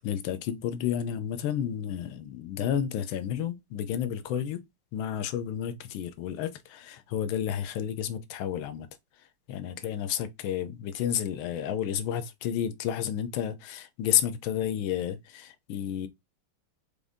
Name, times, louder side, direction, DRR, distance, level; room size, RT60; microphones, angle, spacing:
voice 1, 0.0-4.6 4.9-8.9 9.5-16.1, left 9 dB, 75° left, 1.3 m, -31 dB
5.0 x 2.6 x 3.4 m
omnidirectional pair, 2.4 m